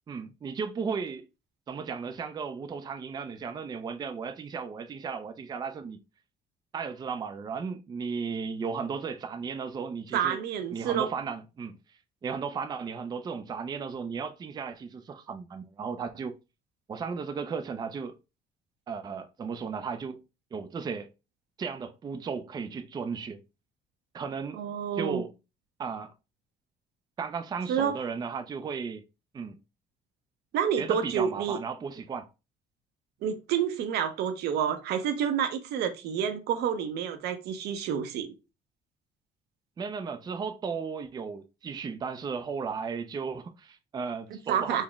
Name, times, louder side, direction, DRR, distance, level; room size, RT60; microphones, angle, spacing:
voice 1, 0.1-1.3 1.7-6.0 6.7-10.4 10.7-11.8 12.2-16.3 16.9-18.2 18.9-20.2 20.5-21.1 21.6-23.4 24.1-24.6 24.9-25.3 25.8-26.1 27.2-29.0 29.3-29.6 30.8-32.3 39.8-44.8, right 5 dB, 25° right, 0.3 m, -35 dB
voice 2, 10.1-11.1 24.5-25.2 27.7-28.0 30.5-31.6 33.2-38.3 44.5-44.8, right 8 dB, 75° right, 0.6 m, -29 dB
4.0 x 2.0 x 3.3 m
cardioid pair, 110°, 17 cm